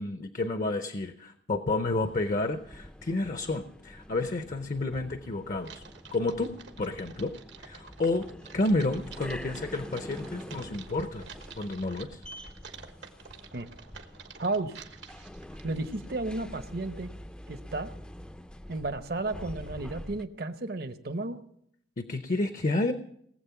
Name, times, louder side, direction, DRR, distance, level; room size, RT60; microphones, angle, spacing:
voice 1, 0.0-5.8 6.1-7.3 7.6-8.3 8.5-11.3 11.6-12.2 22.0-22.9, left 2 dB, 45° left, 9 dB, 0.6 m, -30 dB
sound 1, 1.9-20.2, equal, 5° left, 0.4 m, -46 dB
Typing, 5.6-16.1, right 6 dB, 80° right, 1.3 m, -50 dB
voice 2, 14.4-14.7 15.6-17.1 17.5-17.9 18.7-21.4, right 2 dB, 55° right, 10 dB, 0.9 m, -33 dB
19.0 x 7.7 x 5.8 m, 0.71 s
head